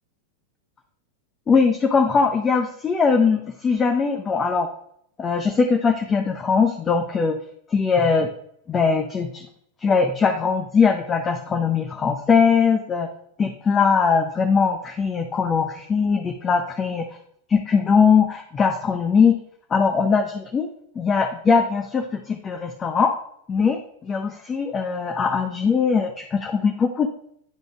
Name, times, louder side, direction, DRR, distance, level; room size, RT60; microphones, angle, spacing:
voice 1, 1.5-4.7 5.2-7.4 7.7-8.3 8.7-9.5 9.8-13.1 13.4-17.0 17.5-19.4 19.7-20.7 21.0-23.1 23.5-27.1, left 5 dB, 20° left, 4 dB, 0.6 m, -20 dB
10.0 x 5.1 x 2.4 m, 0.71 s
figure-of-eight pair, 90°, 0 cm